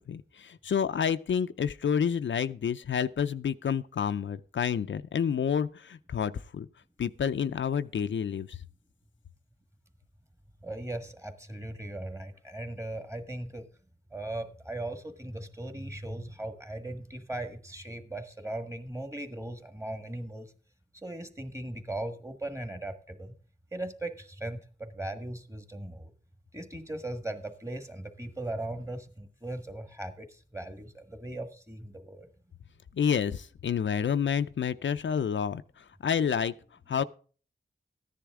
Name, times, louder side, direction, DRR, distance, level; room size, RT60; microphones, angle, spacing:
voice 1, 0.1-6.7 7.0-8.6 33.0-36.5 36.9-37.0, left 7 dB, 75° left, 0.5 m, -29 dB
voice 2, 10.6-13.6 14.1-20.5 20.9-23.3 23.7-26.1 26.5-32.3, right 1 dB, 15° right, 1.6 m, -38 dB
14.5 x 10.0 x 3.6 m
wide cardioid pair, 90°, 20 cm